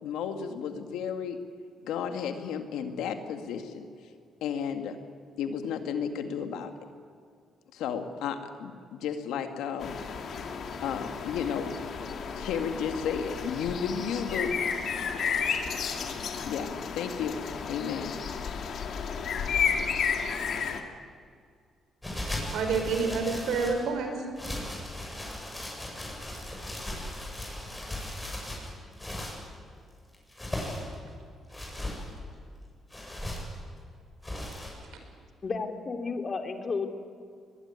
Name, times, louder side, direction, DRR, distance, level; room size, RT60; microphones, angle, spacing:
voice 1, 0.0-1.4 1.8-3.9 4.4-5.0 5.4-6.7 7.7-10.0 10.8-11.7 12.3-14.6 16.5-17.4 17.7-18.1 18.5-18.8, left 7 dB, 90° left, 6 dB, 2.0 m, -33 dB
sound 1, 9.8-20.8, left 6 dB, 60° left, 2.5 m, -32 dB
sound 2, 22.0-23.9 24.4-29.4 30.1-30.9 31.5-32.0 32.9-33.6 34.2-34.7, left 1 dB, 10° left, 7.7 m, -37 dB
voice 2, 22.5-24.2 34.3-34.9, right 4 dB, 80° right, 5 dB, 5.2 m, -29 dB
voice 3, 35.4-36.9, left 4 dB, 35° left, 5 dB, 2.9 m, -32 dB
22.5 x 21.0 x 9.7 m, 2.2 s
cardioid pair, 90°, 0 cm